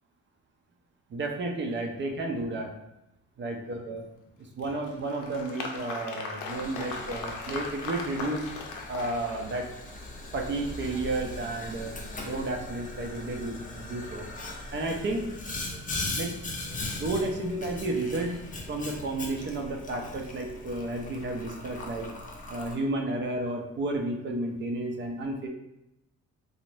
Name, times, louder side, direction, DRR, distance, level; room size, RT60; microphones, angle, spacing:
voice 1, 1.1-2.7 3.4-4.0 4.6-8.5 8.9-9.7 10.3-11.9 12.2-14.2 14.7-15.3 16.1-16.3 17.0-18.4 18.7-22.1 22.5-25.5, right 2 dB, 40° right, 2 dB, 0.5 m, -32 dB
Applause, 4.6-9.9, left 3 dB, 80° left, 0.5 m, -38 dB
Boiling, 6.5-22.8, left 2 dB, 25° left, 0.5 m, -39 dB
2.5 x 2.0 x 3.1 m, 0.88 s
cardioid pair, 90°, 30 cm